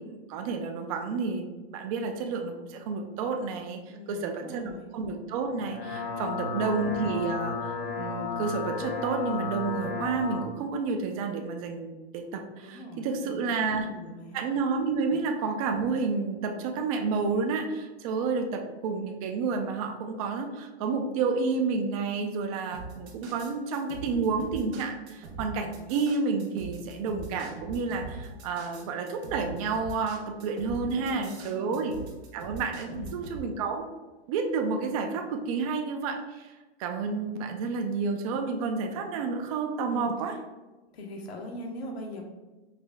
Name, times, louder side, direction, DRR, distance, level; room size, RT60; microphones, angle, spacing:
voice 1, 0.0-3.8 4.1-13.9 14.3-32.0 32.3-33.9 34.3-40.3, right 4 dB, 35° right, 4 dB, 0.5 m, -30 dB
voice 2, 3.9-4.9 6.3-6.8 12.6-14.4 15.1-15.2 30.9-31.9 32.9-33.2 39.9-40.1 40.9-42.2, left 1 dB, 70° left, 2 dB, 1.0 m, -41 dB
sound 1, 5.5-10.5, left 4 dB, 30° left, 0.6 m, -33 dB
sound 2, 22.7-33.4, right 3 dB, 85° right, 1.1 m, -42 dB
5.0 x 2.1 x 3.4 m, 1.2 s
hypercardioid pair, 145°, 32 cm